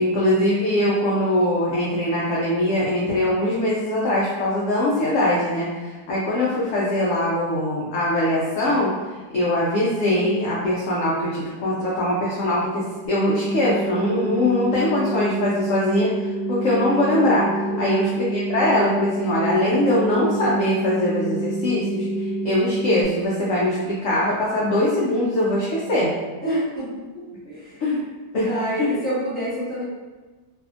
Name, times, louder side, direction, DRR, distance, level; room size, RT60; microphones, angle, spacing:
voice 1, 0.0-8.9 9.3-17.5 17.8-26.1 27.8-28.0 28.3-28.5 28.8-28.9, left 1 dB, 75° left, -6 dB, 0.7 m, -22 dB
sound 1, 13.0-23.0, right 2 dB, 50° left, 0.9 m, -27 dB
voice 2, 17.7-18.1 26.4-27.8 28.4-29.8, equal, 10° left, -10 dB, 0.7 m, -28 dB
2.7 x 2.5 x 2.4 m, 1.3 s
omnidirectional pair, 1.8 m